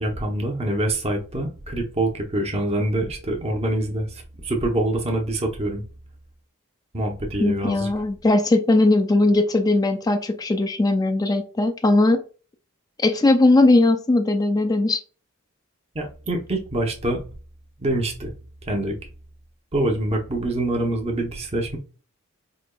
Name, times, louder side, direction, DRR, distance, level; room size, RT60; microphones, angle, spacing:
voice 1, 0.0-5.8 6.9-7.9 15.9-17.2 17.8-18.3 18.7-18.9 19.7-21.8, right 1 dB, 30° right, 2 dB, 0.9 m, -25 dB
voice 2, 7.4-12.2 13.0-15.0, left 2 dB, 15° left, 7 dB, 0.3 m, -19 dB
5.1 x 2.9 x 2.3 m, 0.36 s
head